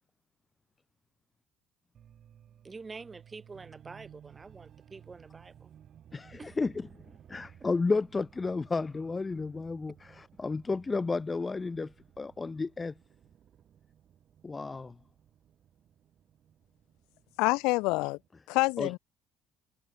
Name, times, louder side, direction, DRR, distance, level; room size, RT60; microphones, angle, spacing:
sound 1, 1.9-18.3, right 9 dB, 55° right, 6.8 m, -57 dB
voice 1, 2.6-5.7 6.4-6.6, right 4 dB, 25° right, 6.2 m, -47 dB
voice 2, 6.1-6.9 7.3-12.9 14.4-14.9 18.8-18.9, left 3 dB, 25° left, 0.8 m, -32 dB
voice 3, 17.4-18.2 18.5-19.0, left 25 dB, 75° left, 0.4 m, -27 dB
supercardioid pair, 70°, 0 cm